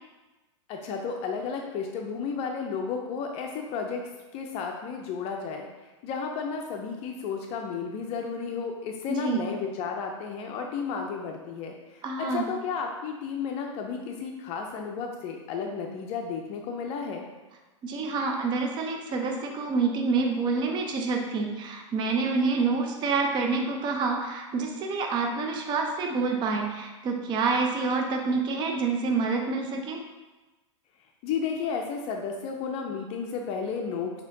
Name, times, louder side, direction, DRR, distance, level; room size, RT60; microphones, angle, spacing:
voice 1, 0.7-5.7 6.0-17.3 31.2-34.1, left 5 dB, 40° left, 2 dB, 0.5 m, -33 dB
voice 2, 9.1-9.5 12.0-12.5 17.8-30.0, right 4 dB, 30° right, 2 dB, 0.6 m, -27 dB
6.1 x 2.9 x 2.7 m, 1.2 s
hypercardioid pair, 105°, 16 cm